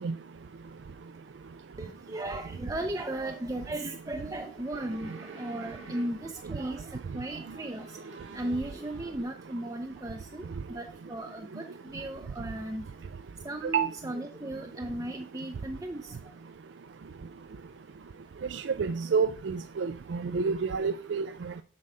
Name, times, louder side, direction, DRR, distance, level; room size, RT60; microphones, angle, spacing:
voice 1, 1.8-8.0 8.3-12.8 13.4-16.3, right 1 dB, 20° right, 0.6 m, -36 dB
sound 1, 4.0-6.5 7.0-9.3, right 3 dB, 90° right, 2.0 m, -49 dB
voice 2, 18.5-21.5, right 5 dB, 75° right, 0.4 m, -29 dB
7.7 x 5.5 x 4.9 m
head